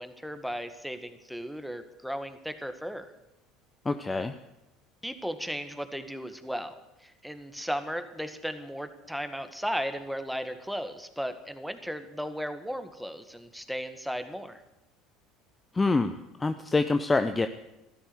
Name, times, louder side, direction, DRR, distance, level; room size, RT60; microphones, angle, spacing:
voice 1, 0.0-3.1 5.0-6.8 7.0-14.6, equal, ahead, 9 dB, 1.8 m, -35 dB
voice 2, 3.9-4.3 15.8-17.5, left 3 dB, 20° left, 9 dB, 0.8 m, -26 dB
14.5 x 12.5 x 7.9 m, 0.94 s
hypercardioid pair, 70°, 0 cm